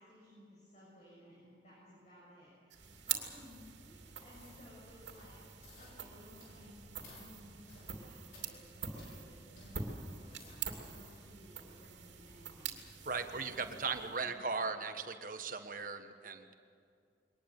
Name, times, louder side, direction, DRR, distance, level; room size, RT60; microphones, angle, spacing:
voice 1, 0.0-12.8 13.2-14.7, equal, 40° left, -6 dB, 7.0 m, -58 dB
sound 1, 2.7-14.4, right 7 dB, 90° right, 2.8 m, -45 dB
sound 2, 4.3-4.6 5.0-5.3 5.6-5.9 6.4-6.6 7.0-7.3 7.7-7.9 8.3-8.5 9.0-9.1 9.6-9.7 10.1-11.2 11.7-11.8, left 2 dB, 80° left, 6.5 m, -58 dB
voice 2, 13.0-16.5, right 4 dB, 50° right, 7 dB, 1.4 m, -38 dB
22.5 x 19.5 x 8.1 m, 2.3 s
head